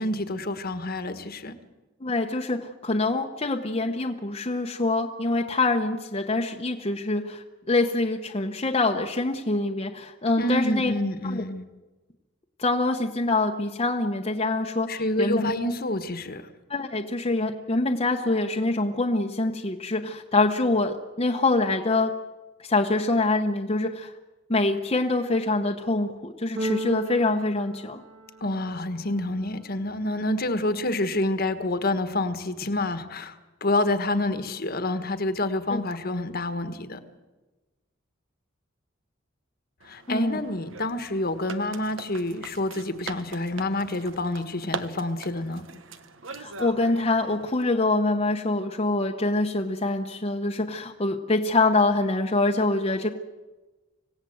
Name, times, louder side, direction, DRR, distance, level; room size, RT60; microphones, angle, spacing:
voice 1, 0.0-1.5 10.4-11.6 14.9-16.4 28.4-33.4 33.6-37.0 39.8-45.7, left 1 dB, 50° left, 1.5 m, -28 dB
voice 2, 2.0-10.9 11.2-11.4 12.6-15.5 16.7-22.1 22.6-24.1 24.5-28.0 35.7-35.8 40.1-40.4 46.3-53.1, left 2 dB, 30° left, 1.0 m, -25 dB
Keyboard (musical), 26.6-28.7, right 1 dB, 55° right, 2.1 m, -34 dB
sound 1, 39.8-47.6, right 4 dB, 75° right, 1.3 m, -41 dB
26.0 x 17.0 x 7.9 m
head